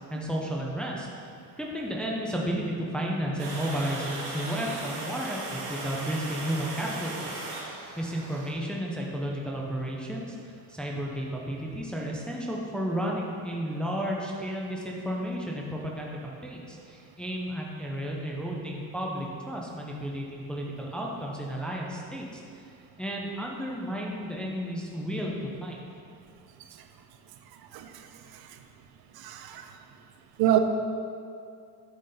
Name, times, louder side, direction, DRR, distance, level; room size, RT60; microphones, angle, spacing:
voice 1, 0.1-1.1 1.6-10.3 10.7-22.4 23.0-25.3 25.6-25.8, equal, 5° left, -2 dB, 0.4 m, -33 dB
Water, 3.4-8.5, right 2 dB, 85° right, 1.5 m, -37 dB
voice 2, 29.2-29.7 30.4-30.6, right 12 dB, 70° right, 7 dB, 0.6 m, -26 dB
9.8 x 4.1 x 3.8 m, 2.4 s
cardioid pair, 180°, 39 cm